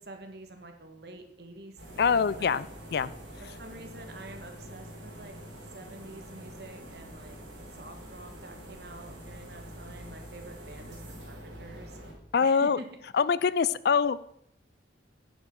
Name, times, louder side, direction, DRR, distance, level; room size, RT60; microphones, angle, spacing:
voice 1, 0.0-2.6 3.4-5.3 5.7-7.4 7.7-12.0 12.4-12.9, right 2 dB, 55° right, 5 dB, 1.5 m, -47 dB
sound 1, 1.8-12.1, equal, 90° right, 3.7 m, -45 dB
voice 2, 2.0-2.6 2.9-3.1 12.3-12.8 13.1-14.2, left 6 dB, 55° left, 18 dB, 0.4 m, -24 dB
10.5 x 6.4 x 6.0 m, 0.75 s
head